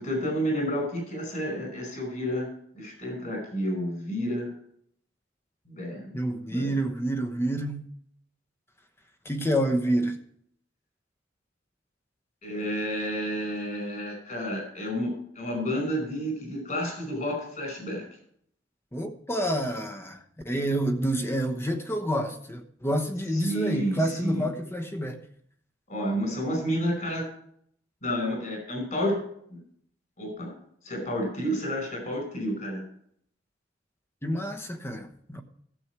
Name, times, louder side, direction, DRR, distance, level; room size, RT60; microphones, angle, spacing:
voice 1, 0.0-2.5 2.7-4.5 5.7-6.1 6.5-6.7 12.4-18.0 23.3-24.5 25.9-27.2 28.0-29.2 30.2-30.6 30.8-32.8, equal, 50° left, 5.0 m, -30 dB
voice 2, 6.1-7.9 9.2-10.2 18.9-25.2 34.2-35.4, right 1 dB, 15° left, 1.1 m, -28 dB
15.0 x 7.2 x 4.6 m
head